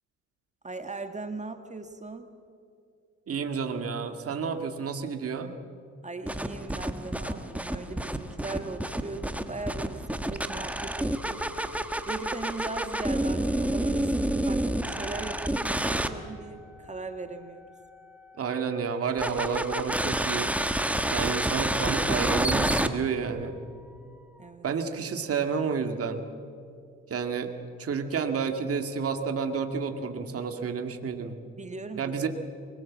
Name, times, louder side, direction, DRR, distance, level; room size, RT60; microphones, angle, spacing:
voice 1, 0.6-2.3 6.0-11.4 12.1-17.6 24.4-24.7 31.6-32.1, right 3 dB, 25° right, 7 dB, 1.7 m, -39 dB
voice 2, 3.3-5.5 18.4-20.5 21.1-23.6 24.6-26.2 27.1-27.5 27.8-31.3 32.0-32.3, right 6 dB, 50° right, 6 dB, 2.1 m, -30 dB
sound 1, 6.3-16.1 19.2-22.9, right 1 dB, 5° right, 1.4 m, -29 dB
23.5 x 22.0 x 7.4 m, 2.4 s
cardioid pair, 90°, 30 cm